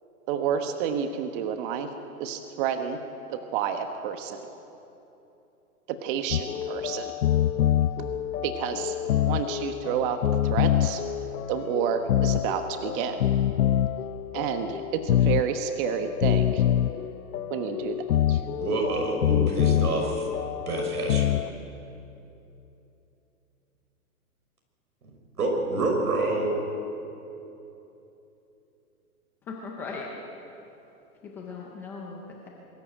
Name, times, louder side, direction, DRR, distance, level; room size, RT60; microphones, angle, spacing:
voice 1, 0.3-1.9 2.2-3.0 3.3-4.4 5.9-7.1 8.4-8.9 9.3-11.0 11.5-13.2 14.3-16.6 17.5-18.0 18.3-18.4, right 8 dB, 35° right, 7 dB, 1.3 m, -30 dB
sound 1, 6.3-21.5, left 11 dB, 75° left, 0.7 m, -26 dB
voice 2, 18.6-20.3 20.7-21.4 25.0-25.1 25.4-26.5, right 2 dB, 85° right, 2 dB, 6.2 m, -27 dB
voice 3, 29.4-30.1 31.2-32.5, left 4 dB, 5° left, -1 dB, 0.4 m, -38 dB
23.0 x 13.5 x 8.9 m, 2.9 s
hypercardioid pair, 135°, 45 cm